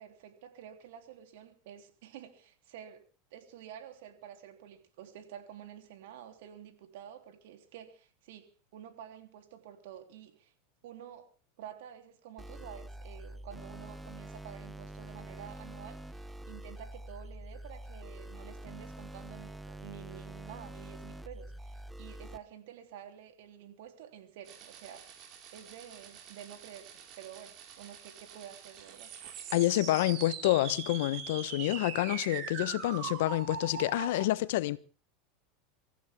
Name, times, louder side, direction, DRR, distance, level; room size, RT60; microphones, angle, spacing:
voice 1, 0.0-3.0 3.3-10.5 10.8-11.3 11.6-25.2 25.5-29.1, right 10 dB, 70° right, 3.4 m, -50 dB
sound 1, 12.4-22.4, right 1 dB, 10° right, 1.1 m, -46 dB
sound 2, 24.5-34.2, right 7 dB, 50° right, 4.9 m, -43 dB
voice 2, 29.5-34.8, left 16 dB, 70° left, 1.0 m, -28 dB
24.5 x 15.0 x 3.7 m
hypercardioid pair, 95°, 0 cm